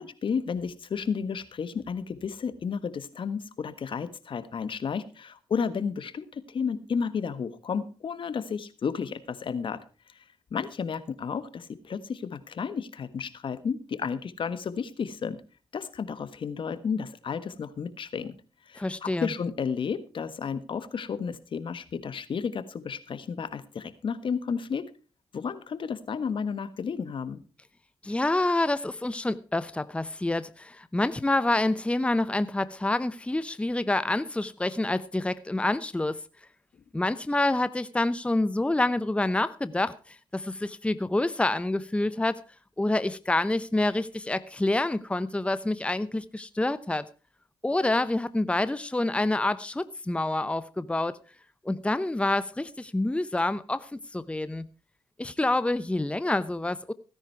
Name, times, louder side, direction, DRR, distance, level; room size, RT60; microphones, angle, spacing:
voice 1, 0.0-9.8 10.1-10.2 10.5-15.4 15.7-18.3 18.7-24.9 25.3-27.4, left 6 dB, 60° left, 1.4 m, -32 dB
voice 2, 18.8-19.3 28.0-36.2 36.9-42.4 42.8-47.0 47.6-51.2 51.6-54.7 55.2-56.9, left 2 dB, 10° left, 0.8 m, -27 dB
16.5 x 10.0 x 4.6 m
cardioid pair, 60°, 9 cm